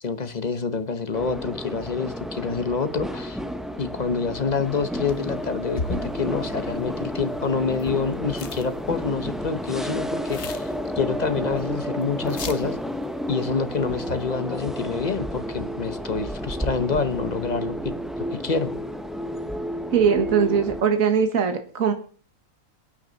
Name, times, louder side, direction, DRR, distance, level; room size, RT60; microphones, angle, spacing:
voice 1, 0.0-3.4 3.8-12.8 13.3-17.9 18.3-18.7, left 5 dB, 35° left, 11 dB, 1.0 m, -27 dB
sound 1, 1.1-20.8, equal, ahead, 0.7 m, -31 dB
sound 2, 5.1-5.3 5.8-8.1 8.3-8.7 9.0-9.4 9.9-11.3 11.5-11.6 12.0-12.1 12.3-12.8 13.9-14.4, left 4 dB, 50° left, 1.4 m, -36 dB
voice 2, 19.9-21.9, right 6 dB, 65° right, 7 dB, 1.9 m, -21 dB
23.0 x 9.3 x 4.0 m, 0.42 s
omnidirectional pair, 1.5 m